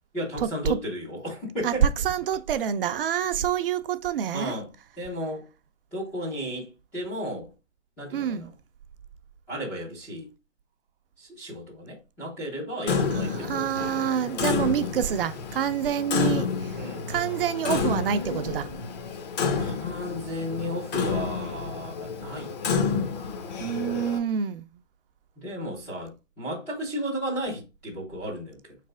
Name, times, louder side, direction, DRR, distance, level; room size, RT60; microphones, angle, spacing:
voice 1, 0.1-1.9 4.3-4.7 5.0-5.5 5.9-7.5 8.0-8.5 9.5-10.3 11.2-13.7 16.7-17.1 19.5-23.5 25.4-28.8, equal, 5° left, 0.4 m, -34 dB
voice 2, 1.6-4.5 8.1-8.5 13.1-18.7 23.6-24.7, right 9 dB, 50° right, 0.5 m, -27 dB
Clock, 12.9-24.2, left 5 dB, 35° left, 0.7 m, -30 dB
4.2 x 3.3 x 3.5 m
hypercardioid pair, 150°, 36 cm